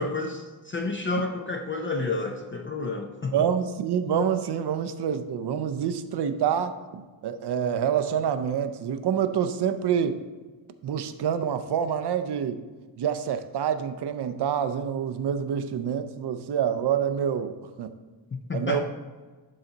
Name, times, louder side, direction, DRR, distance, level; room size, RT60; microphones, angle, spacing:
voice 1, 0.0-3.4 18.5-18.8, left 3 dB, 25° left, 2 dB, 0.4 m, -30 dB
voice 2, 3.3-10.2 10.8-12.6 13.0-17.9 18.5-18.8, right 8 dB, 60° right, 10 dB, 0.6 m, -27 dB
11.5 x 4.0 x 3.9 m, 1.3 s
wide cardioid pair, 175°, 48 cm